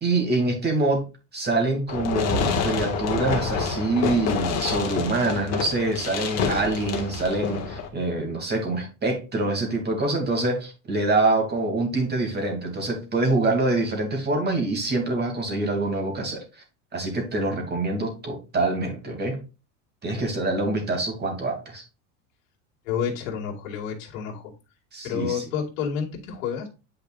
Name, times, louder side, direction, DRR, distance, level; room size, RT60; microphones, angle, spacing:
voice 1, 0.0-1.0 1.3-16.4 16.9-19.4 20.0-21.8 24.9-25.4, right 2 dB, 25° right, 2 dB, 2.5 m, -25 dB
Fireworks, 1.9-7.9, left 5 dB, 40° left, 1.7 m, -27 dB
voice 2, 22.9-24.5 25.0-26.7, left 7 dB, 80° left, 0 dB, 2.2 m, -29 dB
8.9 x 5.1 x 2.4 m, 0.30 s
supercardioid pair, 130°, 40 cm